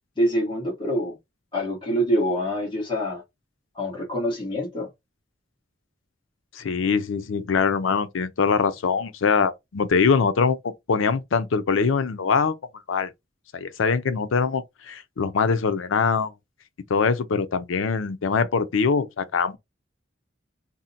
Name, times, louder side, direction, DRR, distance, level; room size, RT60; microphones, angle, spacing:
voice 1, 0.2-1.2 1.5-3.2 3.7-4.9, equal, 25° left, 1.2 m, -25 dB
voice 2, 6.5-12.5 12.9-13.1 13.5-16.3 16.9-19.6, left 5 dB, 85° left, 0.5 m, -23 dB
2.7 x 2.1 x 3.9 m
head